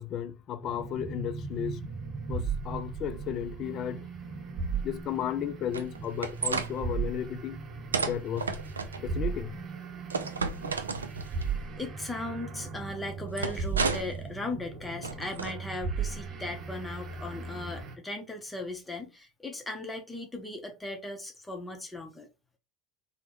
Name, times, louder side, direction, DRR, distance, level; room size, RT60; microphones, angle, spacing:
voice 1, 0.0-1.8 2.3-4.4 4.8-7.6 8.0-8.6 9.0-9.6, left 10 dB, 45° left, 0.3 m, -34 dB
sound 1, 0.6-18.0, right 5 dB, 40° right, 0.7 m, -37 dB
sound 2, 5.7-6.7 7.9-9.0 10.1-11.4 13.4-14.2 15.0-15.5, right 4 dB, 85° right, 0.3 m, -32 dB
voice 2, 11.8-22.3, left 2 dB, 10° left, 0.7 m, -38 dB
3.4 x 2.1 x 3.0 m
hypercardioid pair, 75°, 0 cm